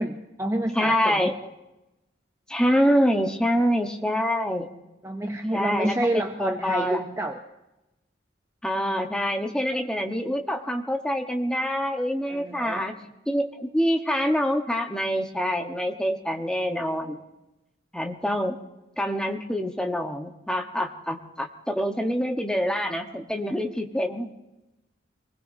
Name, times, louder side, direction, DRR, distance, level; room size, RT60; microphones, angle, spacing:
voice 1, 0.0-1.3 5.0-7.4 12.3-12.8, right 1 dB, 15° right, 4 dB, 0.6 m, -28 dB
voice 2, 0.7-1.4 2.5-4.7 5.5-7.1 8.6-13.0 13.3-17.2 17.9-18.6 19.0-24.3, equal, 5° left, 3 dB, 1.1 m, -26 dB
26.5 x 20.0 x 2.7 m, 0.98 s
head